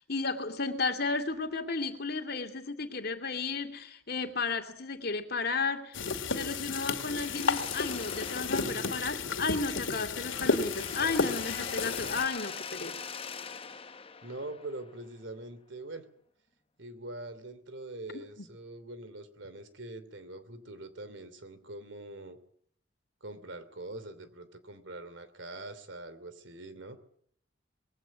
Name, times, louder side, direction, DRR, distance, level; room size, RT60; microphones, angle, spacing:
voice 1, 0.1-6.1 6.3-12.9, left 4 dB, 55° left, 2.6 m, -33 dB
sound 1, 5.9-12.2, left 4 dB, 85° left, 2.4 m, -32 dB
Mechanisms, 7.2-9.8 10.2-15.1, left 6 dB, 30° left, 1.0 m, -43 dB
voice 2, 14.2-16.0 16.8-22.4 23.2-27.0, right 2 dB, 70° right, 2.9 m, -43 dB
21.5 x 16.5 x 9.4 m
head